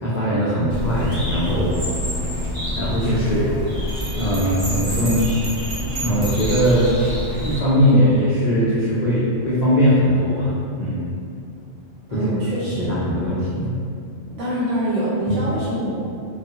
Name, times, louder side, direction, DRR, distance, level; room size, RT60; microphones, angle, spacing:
voice 1, 0.0-1.8 2.8-3.5 4.2-5.3 6.0-6.9 7.4-11.0 12.1-12.3 12.8-13.7 15.3-15.4, equal, 65° left, -9 dB, 0.4 m, -20 dB
Bird, 0.7-7.6, equal, 45° right, 0.8 m, -27 dB
sound 1, 0.9-9.2, left 2 dB, 20° right, 0.6 m, -38 dB
Bell, 3.9-6.8, right 2 dB, 85° right, 1.1 m, -33 dB
voice 2, 12.1-13.0 14.4-16.0, equal, 70° right, -10 dB, 1.3 m, -25 dB
2.4 x 2.4 x 2.7 m, 2.4 s
omnidirectional pair, 1.3 m